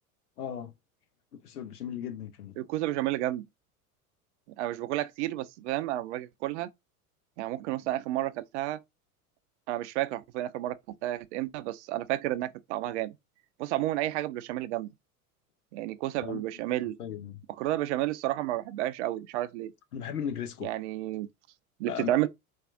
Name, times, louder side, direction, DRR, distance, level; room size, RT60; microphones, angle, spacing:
voice 1, 0.4-0.7 1.3-2.6 16.2-16.4 17.0-17.4 19.9-20.7 21.8-22.3, left 8 dB, 80° left, 0.6 m, -37 dB
voice 2, 2.6-3.4 4.6-6.7 7.4-8.8 9.7-10.8 11.0-13.1 13.6-14.9 15.7-17.0 17.6-19.7 20.6-21.3 21.8-22.3, right 15 dB, 50° right, 0.5 m, -31 dB
4.3 x 2.3 x 2.3 m
figure-of-eight pair, 80°, 44 cm